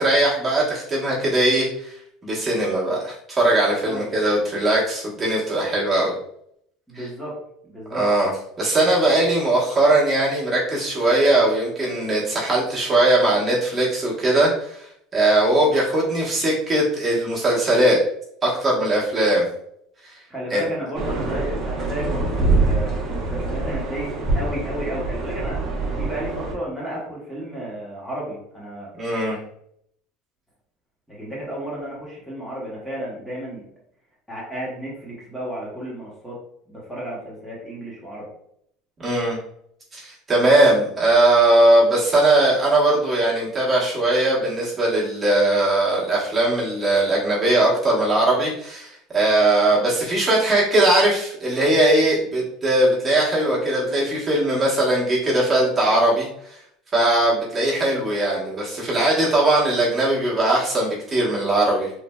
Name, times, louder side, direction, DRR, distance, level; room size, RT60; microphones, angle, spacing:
voice 1, 0.0-2.0 2.2-6.1 6.9-7.1 7.9-8.3 8.6-14.9 15.1-18.0 18.4-19.4 20.0-20.1 20.5-20.7 28.9-29.4 39.0-39.4 39.9-56.3 56.9-61.9, right 1 dB, 25° right, -6 dB, 1.0 m, -20 dB
voice 2, 3.8-4.1 6.9-7.4 7.6-8.1 20.3-25.6 25.9-28.9 31.1-33.6 34.3-36.4 36.7-38.3, right 1 dB, 5° left, -6 dB, 1.0 m, -32 dB
sound 1, 20.9-26.5, right 2 dB, 40° right, 0.7 m, -24 dB
3.1 x 2.5 x 2.2 m, 0.70 s
supercardioid pair, 120°, 0 cm